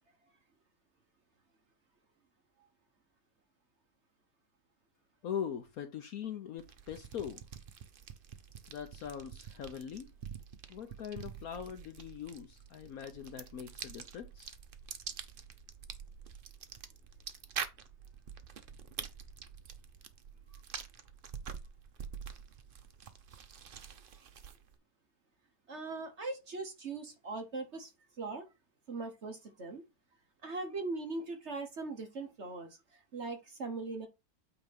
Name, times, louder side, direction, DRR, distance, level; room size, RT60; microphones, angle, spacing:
voice 1, 5.2-7.4 8.7-10.1 10.7-14.5, left 8 dB, 65° left, 1.0 m, -41 dB
sound 1, 6.6-24.8, right 7 dB, 75° right, 0.5 m, -47 dB
voice 2, 25.7-27.9 28.2-28.4 28.9-29.8 30.4-34.1, right 3 dB, 45° right, 1.3 m, -40 dB
8.8 x 3.0 x 5.2 m
omnidirectional pair, 2.0 m